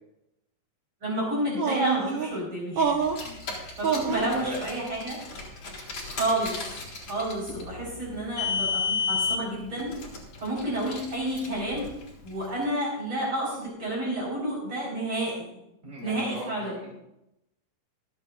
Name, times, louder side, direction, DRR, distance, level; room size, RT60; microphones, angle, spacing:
voice 1, 1.0-3.0 3.8-5.2 5.8-6.6 7.1-10.0 10.4-11.9 12.2-15.5 16.0-16.8, right 1 dB, 35° right, -5 dB, 5.4 m, -30 dB
sound 1, 1.6-2.3 2.7-3.3 3.8-4.3, right 6 dB, 60° right, 1.2 m, -26 dB
Car, 3.0-12.5, left 5 dB, 40° left, 3.4 m, -33 dB
voice 2, 3.9-4.6 15.8-17.0, right 1 dB, 15° right, -4 dB, 5.1 m, -38 dB
26.0 x 8.8 x 2.6 m, 0.84 s
omnidirectional pair, 4.0 m